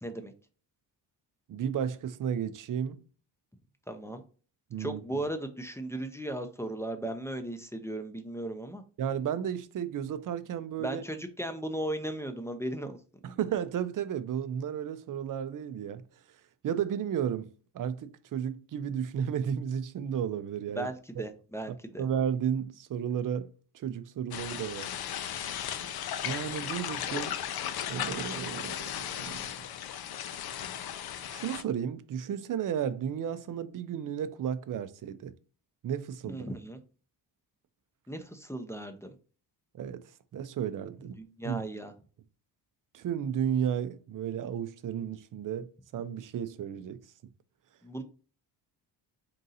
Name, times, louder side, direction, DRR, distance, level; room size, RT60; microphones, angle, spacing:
voice 1, 0.0-0.3 3.9-4.2 4.8-8.8 10.8-13.0 20.8-22.0 36.2-36.8 38.1-39.1 41.2-41.9 47.8-48.0, right 1 dB, 5° left, 0.5 m, -36 dB
voice 2, 1.5-3.0 4.7-5.0 9.0-11.0 13.2-16.0 16.6-20.9 21.7-24.9 25.7-25.9 26.2-27.4 27.9-28.9 29.2-29.5 31.3-35.3 35.8-36.5 39.7-41.1 41.4-41.6 42.9-45.7 45.9-47.0, right 8 dB, 45° right, 0.5 m, -33 dB
sound 1, 24.3-31.6, left 10 dB, 55° left, 0.5 m, -36 dB
3.8 x 2.7 x 3.9 m
cardioid pair, 95°, 44 cm